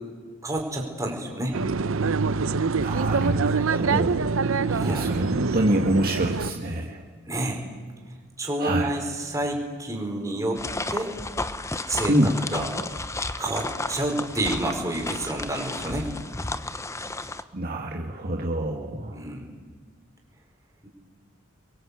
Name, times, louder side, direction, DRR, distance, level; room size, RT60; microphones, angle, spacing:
voice 1, 0.4-1.6 4.6-5.2 7.2-7.6 8.4-10.6 10.9-11.1 11.9-12.7 13.4-16.1 19.1-19.5 20.8-20.9, right 1 dB, 15° right, 1 dB, 4.7 m, -29 dB
sound 1, 1.5-6.5, right 4 dB, 70° right, 0.7 m, -25 dB
voice 2, 2.8-4.3 4.8-7.0 8.6-9.0 12.1-12.3 17.5-19.2, right 1 dB, 45° right, 0 dB, 2.1 m, -26 dB
sound 2, 10.6-17.4, left 2 dB, 15° left, 0.8 m, -33 dB
29.5 x 22.5 x 8.3 m, 1.5 s
head